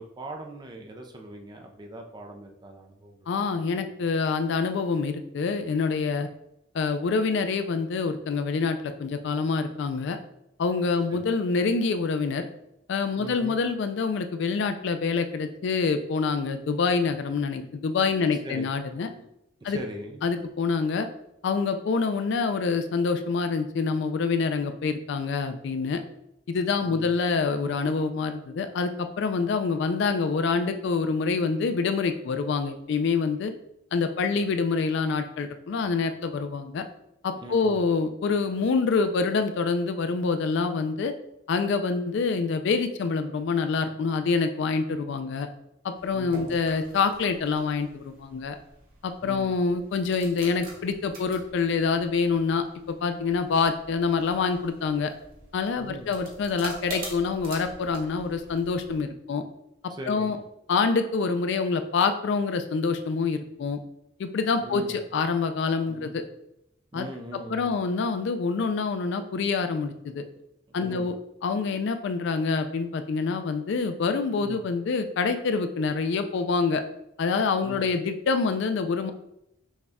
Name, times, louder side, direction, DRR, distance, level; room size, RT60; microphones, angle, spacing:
voice 1, 0.0-3.3 11.1-11.3 13.2-13.6 18.4-19.3 19.6-20.3 26.8-27.1 37.4-37.8 46.1-46.6 49.2-49.5 55.8-56.1 59.9-60.4 64.6-65.0 65.9-66.1 66.9-67.7 70.7-71.1 74.4-74.6 77.6-77.8, right 1 dB, 20° right, 2 dB, 0.4 m, -40 dB
voice 2, 3.3-6.3 6.7-10.2 10.6-12.5 12.9-19.1 19.6-19.8 20.2-21.1 21.4-26.0 26.5-33.5 33.9-36.8 37.2-41.1 41.5-45.5 45.8-48.6 49.0-55.1 55.5-59.4 60.1-60.4 60.7-63.8 64.2-66.2 66.9-67.1 67.5-70.2 70.7-71.1 71.4-76.8 77.2-79.1, left 4 dB, 60° left, 8 dB, 0.3 m, -26 dB
sound 1, 46.0-59.0, right 1 dB, 45° right, 1.1 m, -45 dB
6.2 x 2.2 x 3.5 m, 0.82 s
head